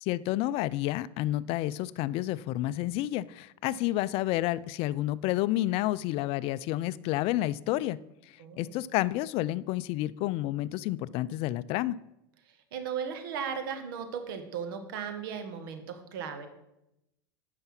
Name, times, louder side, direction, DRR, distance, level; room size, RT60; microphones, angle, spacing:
voice 1, 0.0-8.0 8.3-12.0, left 15 dB, 55° left, 19 dB, 0.4 m, -30 dB
voice 2, 8.4-8.8 12.5-16.5, right 7 dB, 75° right, 7 dB, 1.4 m, -37 dB
9.5 x 5.7 x 5.8 m, 0.86 s
hypercardioid pair, 100°, 12 cm